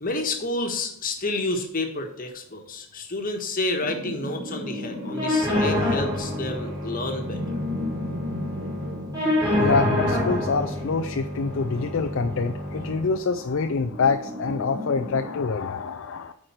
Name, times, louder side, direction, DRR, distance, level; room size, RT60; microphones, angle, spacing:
voice 1, 0.0-7.6, left 2 dB, 40° left, 4 dB, 1.4 m, -29 dB
sound 1, 3.8-15.4, left 1 dB, 50° right, 3.0 m, -36 dB
sound 2, 5.2-13.2, left 1 dB, 15° right, 3.3 m, -27 dB
voice 2, 9.6-16.3, left 4 dB, 60° left, 6 dB, 0.4 m, -26 dB
8.8 x 4.8 x 4.4 m, 0.71 s
head